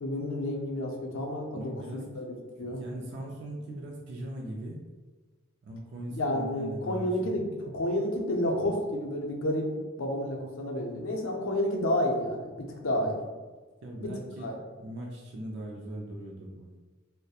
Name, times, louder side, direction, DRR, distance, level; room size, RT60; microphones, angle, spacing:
voice 1, 0.0-2.8 6.1-7.5 7.7-9.7 10.0-13.2 14.0-14.1 14.4-14.6, left 1 dB, 70° left, 0 dB, 0.5 m, -30 dB
voice 2, 1.5-2.0 2.6-4.8 5.6-7.3 13.0-13.1 13.8-14.5 14.8-16.8, right 1 dB, 55° right, -1 dB, 0.3 m, -40 dB
2.8 x 2.1 x 2.3 m, 1.3 s
head